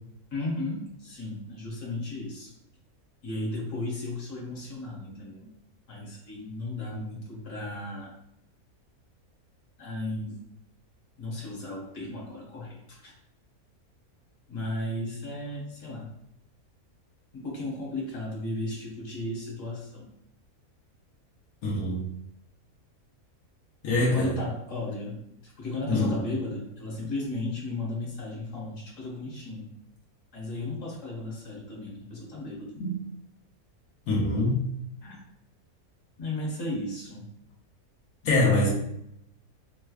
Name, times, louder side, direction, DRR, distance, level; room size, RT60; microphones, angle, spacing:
voice 1, 0.3-2.5 3.2-5.5 5.9-8.1 9.8-10.4 11.2-13.1 14.5-16.1 17.3-20.1 23.8-29.8 30.3-32.7 35.0-35.2 36.2-37.3, left 2 dB, 60° left, -4 dB, 1.6 m, -35 dB
voice 2, 21.6-22.2 23.8-24.4 25.9-26.3 32.8-33.1 34.1-34.6 38.2-38.7, left 2 dB, 85° left, -4 dB, 1.3 m, -25 dB
5.1 x 3.2 x 2.3 m, 0.76 s
omnidirectional pair, 1.5 m